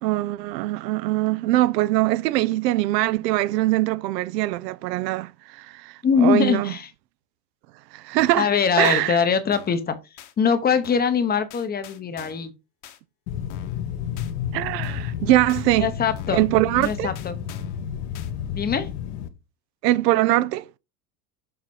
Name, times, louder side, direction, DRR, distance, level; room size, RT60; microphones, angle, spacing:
voice 1, 0.0-6.7 7.9-8.5 8.8-9.2 14.5-15.9 16.3-17.1 19.8-20.7, right 16 dB, 80° right, 0.7 m, -22 dB
voice 2, 6.0-6.9 8.4-10.0 10.4-12.5 15.8-16.4 16.8-17.3 18.5-18.9, left 6 dB, 20° left, 0.8 m, -22 dB
sound 1, 8.2-8.5 8.8-9.0 9.5-9.8 10.2-10.3 10.8-11.2 11.5-12.5 12.8-13.0 13.5-13.8 14.2-14.3 14.8-15.2 15.5-15.7 16.2-16.5 16.8-17.8 18.1-18.3, left 8 dB, 35° left, 1.2 m, -46 dB
sound 2, 13.3-19.3, left 9 dB, 70° left, 1.3 m, -31 dB
7.0 x 4.0 x 4.7 m
supercardioid pair, 130°, 49 cm